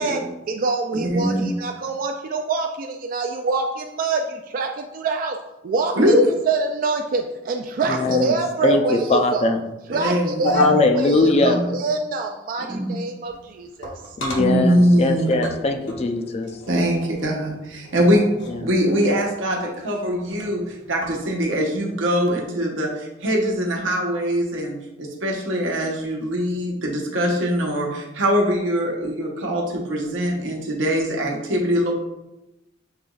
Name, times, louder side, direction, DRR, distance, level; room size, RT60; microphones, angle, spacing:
voice 1, 0.0-5.4 5.6-9.5 9.9-14.2, right 3 dB, 45° right, 3 dB, 0.3 m, -25 dB
voice 2, 1.0-1.5 6.0-6.2 9.9-10.7 11.2-11.7 12.7-13.0 14.4-15.3 16.7-18.3 18.6-31.9, equal, 90° right, 0 dB, 1.0 m, -22 dB
voice 3, 7.9-8.3 8.6-9.6 10.4-11.6 14.2-16.5 18.0-18.1 18.5-18.6, left 3 dB, 35° left, 6 dB, 0.4 m, -20 dB
sound 1, 13.2-21.4, equal, 65° left, 0.8 m, -39 dB
6.6 x 3.0 x 2.3 m, 0.95 s
head